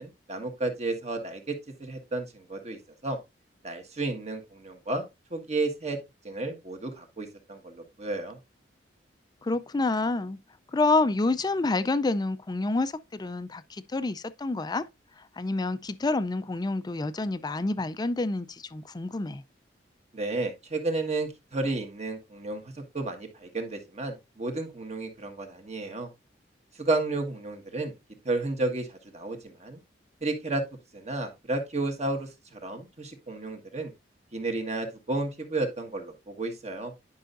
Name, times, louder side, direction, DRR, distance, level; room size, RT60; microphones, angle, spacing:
voice 1, 0.0-3.2 3.6-5.0 5.3-6.0 6.2-8.4 20.1-26.1 26.8-27.9 28.2-29.8 30.2-30.6 30.9-33.9 34.3-36.9, right 2 dB, 40° right, 1.6 m, -32 dB
voice 2, 9.4-10.4 10.7-14.9 15.2-19.4, left 2 dB, 20° left, 0.4 m, -28 dB
10.0 x 5.6 x 2.5 m
head